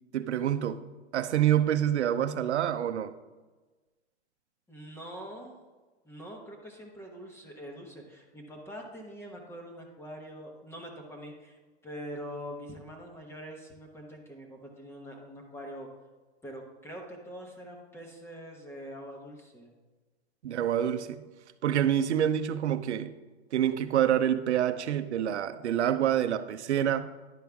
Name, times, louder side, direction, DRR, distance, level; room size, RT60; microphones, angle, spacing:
voice 1, 0.1-0.8 1.1-3.2 20.4-21.2 21.6-23.1 23.5-27.1, right 10 dB, 85° right, 0.6 m, -27 dB
voice 2, 4.7-5.5 6.0-11.6 11.8-15.9 16.4-19.7, equal, 5° left, 0.9 m, -44 dB
10.5 x 4.6 x 3.5 m
hypercardioid pair, 135°, 33 cm